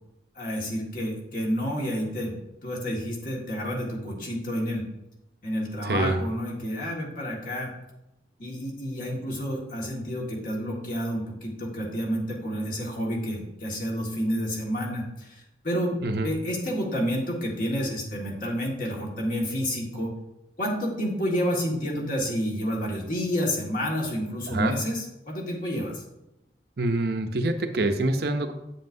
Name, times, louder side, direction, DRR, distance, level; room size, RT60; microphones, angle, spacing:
voice 1, 0.4-2.4 2.6-4.9 5.4-7.7 8.4-20.1 20.6-26.0, equal, 50° left, -2 dB, 1.8 m, -29 dB
voice 2, 5.8-6.2 16.0-16.3 24.5-24.8 26.8-28.5, right 2 dB, 60° right, 7 dB, 0.6 m, -26 dB
8.4 x 7.4 x 2.7 m, 0.91 s
head